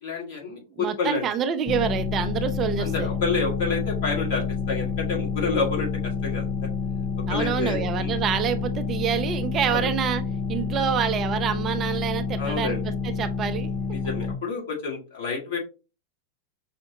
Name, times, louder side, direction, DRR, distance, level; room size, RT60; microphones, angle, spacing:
voice 1, 0.0-1.2 2.8-5.9 6.2-6.7 7.3-8.2 9.7-9.9 12.4-12.8 13.9-15.6, left 4 dB, 55° left, -2 dB, 1.6 m, -29 dB
voice 2, 0.8-3.1 7.3-10.2 10.5-13.7, right 8 dB, 30° right, 8 dB, 0.4 m, -27 dB
sound 1, 1.7-14.4, left 5 dB, 35° left, 0.4 m, -28 dB
5.6 x 2.1 x 2.7 m, 0.31 s
figure-of-eight pair, 90°, 0 cm